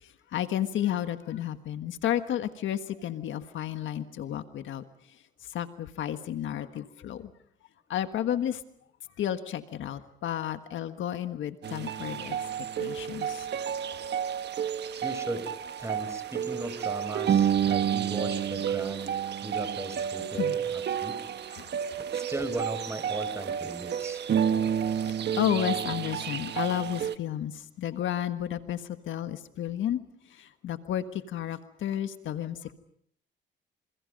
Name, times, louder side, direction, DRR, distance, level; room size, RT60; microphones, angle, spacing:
voice 1, 0.0-4.8 5.4-7.3 7.9-8.6 9.2-12.4 12.8-13.5 20.3-20.6 21.5-21.7 25.3-30.0 30.3-32.7, left 11 dB, 75° left, 9 dB, 1.5 m, -32 dB
sound 1, 11.6-27.2, right 9 dB, 60° right, 1.4 m, -30 dB
voice 2, 15.0-15.5 15.8-19.1 19.4-21.2 22.0-24.2, right 1 dB, 15° right, 9 dB, 5.9 m, -37 dB
27.5 x 27.5 x 5.3 m, 0.66 s
cardioid pair, 90°, 20 cm